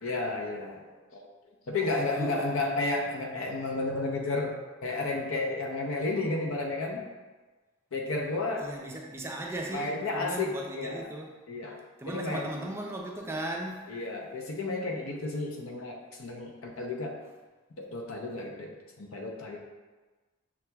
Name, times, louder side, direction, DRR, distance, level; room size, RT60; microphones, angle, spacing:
voice 1, 0.0-0.8 1.1-1.3 1.7-4.5 4.8-7.1 7.9-8.7 9.7-11.1 11.5-11.8 12.1-12.6 13.9-17.1 17.9-18.7 19.0-19.6, left 2 dB, 70° left, 1 dB, 0.6 m, -32 dB
voice 2, 1.8-2.7 8.6-11.3 12.0-14.0, right 1 dB, 10° right, -1 dB, 0.3 m, -37 dB
5.8 x 2.9 x 2.2 m, 1.3 s
head